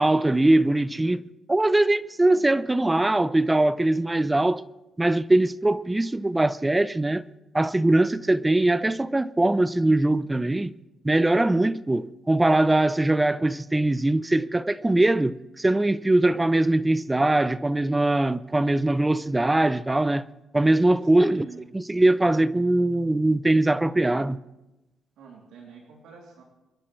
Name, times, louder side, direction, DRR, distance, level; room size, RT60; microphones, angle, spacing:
voice 1, 0.0-4.6 5.0-7.2 7.5-10.7 11.0-20.2 20.5-21.5 21.7-24.4, right 2 dB, 15° right, 0.6 m, -21 dB
voice 2, 21.0-21.6 25.2-26.4, right 6 dB, 85° right, 3.0 m, -46 dB
28.5 x 11.0 x 3.2 m
cardioid pair, 90°, 0 cm